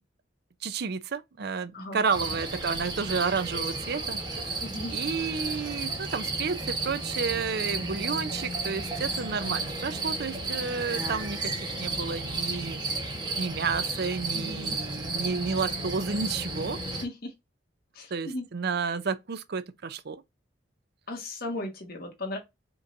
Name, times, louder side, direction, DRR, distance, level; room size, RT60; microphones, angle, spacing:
voice 1, 0.6-4.6 4.9-12.8 13.4-16.8 18.1-20.2, right 5 dB, 60° right, 0.5 m, -31 dB
sound 1, 2.1-17.1, right 3 dB, 25° right, 1.1 m, -33 dB
voice 2, 4.6-5.0 14.3-14.8 16.9-17.3 17.9-18.5 21.1-22.4, left 1 dB, 55° left, 1.4 m, -36 dB
5.2 x 3.1 x 2.6 m
head